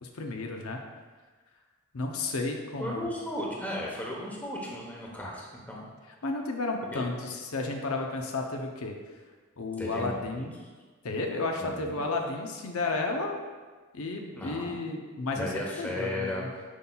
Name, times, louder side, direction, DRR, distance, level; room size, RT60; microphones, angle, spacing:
voice 1, 0.0-0.8 1.9-3.1 6.2-9.0 9.6-10.6 11.0-13.4 13.9-16.5, left 3 dB, 75° left, 2 dB, 0.7 m, -32 dB
voice 2, 2.8-5.9 6.9-7.0 9.8-10.4 11.6-12.0 14.3-14.8 15.4-16.6, left 1 dB, 10° left, -3 dB, 0.9 m, -35 dB
8.2 x 5.5 x 2.3 m, 1.4 s
head